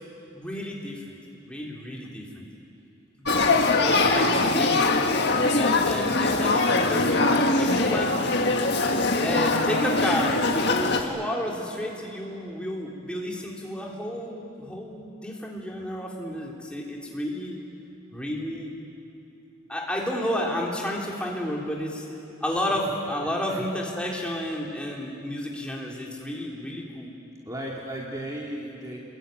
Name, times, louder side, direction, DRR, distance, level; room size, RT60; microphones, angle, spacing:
voice 1, 0.3-1.0 1.4-2.4 3.8-8.4 9.2-17.6 18.1-18.7 19.7-22.1 22.4-27.1, equal, 5° left, -3 dB, 3.5 m, -31 dB
Male speech man speaking / Child speech kid speaking / Conversation, 3.2-11.0, left 3 dB, 55° left, 1.8 m, -22 dB
voice 2, 3.8-4.5 23.5-23.6 27.5-29.0, right 1 dB, 15° right, -3 dB, 2.3 m, -37 dB
28.5 x 22.0 x 9.3 m, 2.8 s
head